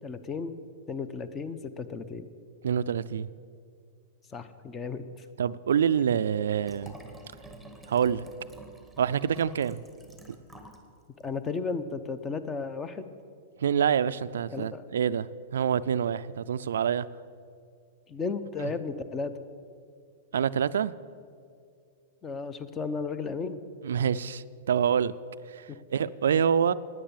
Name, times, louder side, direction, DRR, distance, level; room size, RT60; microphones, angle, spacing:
voice 1, 0.0-0.5 0.9-2.3 4.3-5.2 11.2-13.1 14.5-14.8 18.1-19.4 22.2-23.6 25.7-25.8, left 4 dB, 20° left, 12 dB, 0.8 m, -34 dB
voice 2, 2.6-3.3 5.4-6.9 7.9-8.2 9.0-9.8 10.3-10.4 13.6-17.1 18.6-18.7 20.3-20.9 23.8-25.1 25.5-26.7, right 8 dB, 85° right, 15 dB, 0.3 m, -26 dB
Liquid, 6.6-10.9 11.2-11.3, right 1 dB, 5° left, 1.3 m, -49 dB
10.0 x 9.5 x 7.3 m, 2.3 s
hypercardioid pair, 130°, 0 cm